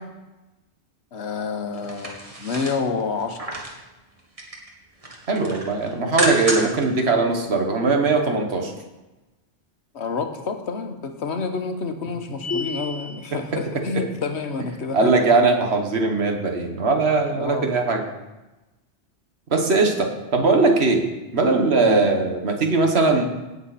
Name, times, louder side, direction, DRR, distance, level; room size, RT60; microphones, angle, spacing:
voice 1, 1.1-3.4 9.9-15.1 17.4-17.7 21.8-22.1, left 4 dB, 70° left, 6 dB, 1.3 m, -28 dB
sound 1, 1.7-3.8 4.2-4.7 5.0-6.9 7.2-7.3, right 1 dB, 30° right, 1.7 m, -29 dB
voice 2, 5.3-8.7 13.9-14.0 14.9-18.0 19.5-21.0 21.3-23.3, right 3 dB, 65° right, 3 dB, 1.7 m, -20 dB
sound 2, 12.4-13.3, left 3 dB, 85° left, 1.6 m, -30 dB
17.0 x 7.1 x 4.2 m, 1.1 s
omnidirectional pair, 1.2 m